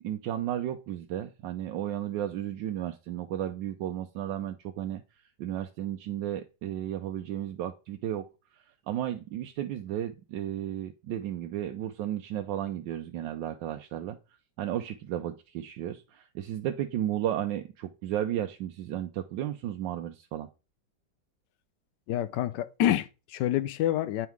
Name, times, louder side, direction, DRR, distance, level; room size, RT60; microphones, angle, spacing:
voice 1, 0.0-5.0 5.4-8.3 8.9-14.2 14.6-20.5, right 11 dB, 80° right, 1.3 m, -33 dB
voice 2, 22.1-24.3, left 12 dB, 75° left, 1.2 m, -27 dB
9.2 x 3.7 x 4.6 m
omnidirectional pair, 2.0 m